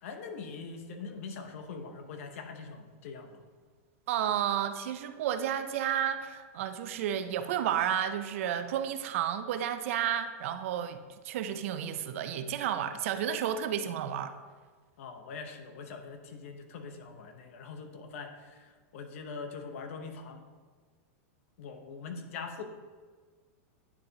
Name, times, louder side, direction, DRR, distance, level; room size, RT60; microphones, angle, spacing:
voice 1, 0.0-3.4 15.0-20.4 21.6-22.6, left 4 dB, 65° left, 6 dB, 0.8 m, -43 dB
voice 2, 4.1-14.3, right 9 dB, 65° right, 10 dB, 0.4 m, -32 dB
9.5 x 3.9 x 2.8 m, 1.5 s
supercardioid pair, 150°, 8 cm